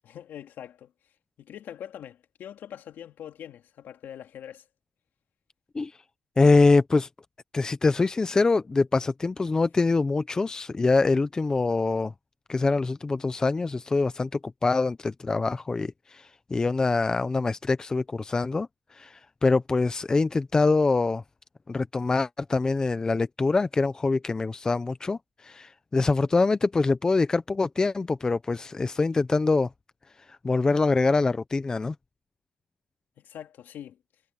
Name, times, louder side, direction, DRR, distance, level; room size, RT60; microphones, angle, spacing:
voice 1, 0.0-0.9 1.4-4.7 33.2-34.0, left 10 dB, 60° left, 3.0 m, -43 dB
voice 2, 6.4-7.1 7.5-12.1 12.5-14.3 14.6-18.7 18.9-21.2 21.7-25.2 25.4-29.7 30.3-31.9, left 3 dB, 20° left, 0.6 m, -24 dB
cardioid pair, 125°, 4 cm